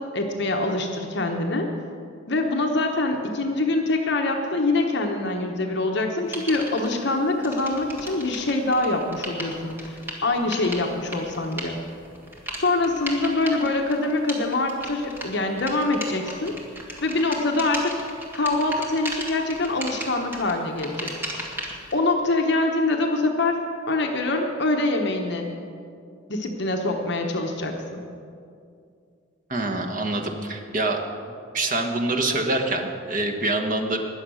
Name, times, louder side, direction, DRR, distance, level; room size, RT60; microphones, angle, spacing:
voice 1, 0.0-1.7 2.3-11.8 12.6-16.5 17.0-18.0 18.3-21.1 21.9-23.6 23.9-25.5 26.3-28.0, left 2 dB, 55° left, 3 dB, 1.1 m, -24 dB
sound 1, 6.3-7.0 7.4-21.9, equal, 10° right, 1.7 m, -36 dB
voice 2, 29.5-31.0 31.5-34.0, right 2 dB, 40° right, 2 dB, 1.3 m, -25 dB
20.5 x 7.1 x 6.4 m, 2.4 s
head